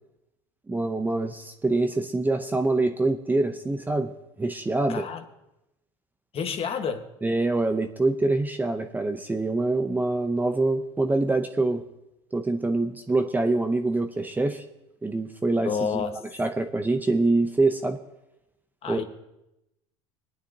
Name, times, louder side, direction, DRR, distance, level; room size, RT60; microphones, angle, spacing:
voice 1, 0.7-4.1 4.4-5.1 7.2-11.8 12.3-14.6 15.0-16.0 16.4-18.0 18.9-19.0, right 2 dB, 10° right, 7 dB, 0.7 m, -25 dB
voice 2, 4.9-5.2 6.3-7.1 15.6-16.1 18.8-19.0, left 6 dB, 40° left, 6 dB, 1.4 m, -29 dB
22.5 x 9.3 x 2.8 m, 0.90 s
supercardioid pair, 100°, 16 cm